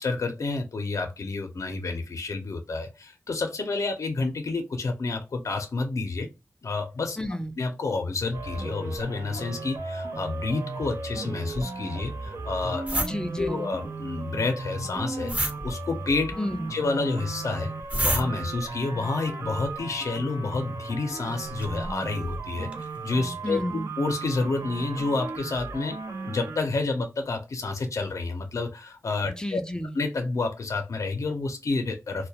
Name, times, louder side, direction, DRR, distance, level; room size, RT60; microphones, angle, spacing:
voice 1, 0.0-6.3 6.6-7.2 7.6-13.0 13.4-16.4 16.7-17.7 18.0-29.6 29.9-32.3, left 3 dB, 85° left, 0.5 m, -29 dB
voice 2, 7.2-7.6 12.9-13.7 16.4-16.7 23.4-23.9 29.3-30.0, left 1 dB, 15° left, 0.3 m, -31 dB
sound 1, 8.3-26.6, right 3 dB, 75° right, 0.5 m, -36 dB
sound 2, 12.8-13.1 15.3-15.5 17.9-18.2 21.2-22.0 22.7-22.9 23.4-23.5, right 1 dB, 25° right, 0.6 m, -27 dB
2.2 x 2.1 x 2.7 m
wide cardioid pair, 60°, 5 cm